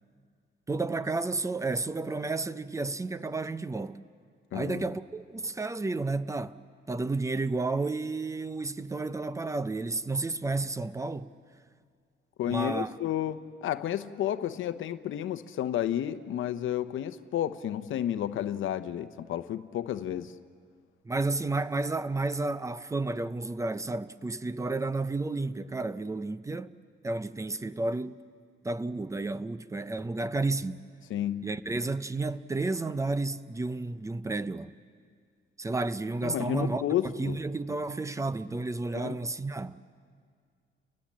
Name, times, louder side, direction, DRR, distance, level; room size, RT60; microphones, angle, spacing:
voice 1, 0.7-4.0 4.5-6.6 6.9-11.3 12.5-13.0 21.0-26.7 27.0-28.2 28.6-30.8 31.4-34.8 35.6-39.9, right 3 dB, 15° right, 0.5 m, -31 dB
voice 2, 4.5-4.8 12.4-20.3 31.1-31.5 36.2-37.4 38.9-39.2, left 11 dB, 75° left, 0.8 m, -31 dB
30.0 x 20.5 x 7.4 m
cardioid pair, 140°, 21 cm